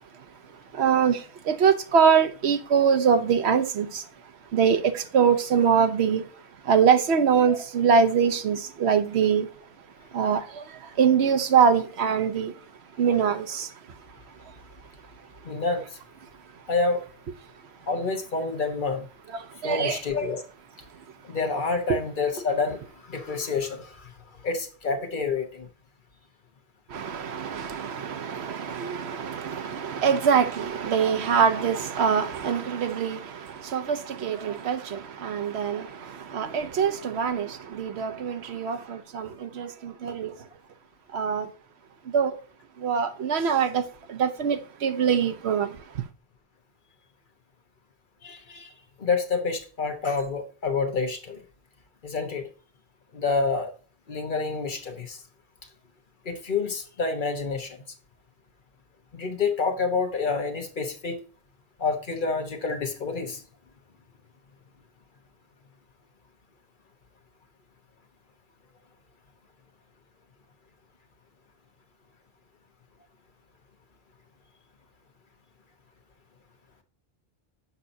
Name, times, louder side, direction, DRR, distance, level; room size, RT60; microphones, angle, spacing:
voice 1, 0.8-1.2 1.5-4.0 4.5-6.2 6.7-9.5 10.1-10.6 11.0-12.5 13.0-13.7 19.6-20.0 26.9-40.3 41.1-41.5 42.1-42.3 42.8-43.8 44.1-45.7, right 7 dB, 85° right, 1.0 m, -23 dB
voice 2, 15.4-16.0 16.7-17.0 17.9-19.1 19.6-20.4 21.2-24.1 24.4-25.7 48.2-48.7 49.0-51.4 52.0-52.5 53.1-53.7 54.1-55.2 56.2-57.8 59.1-61.2 61.8-63.4, left 4 dB, 50° left, 1.3 m, -28 dB
7.1 x 5.6 x 2.7 m
omnidirectional pair, 1.1 m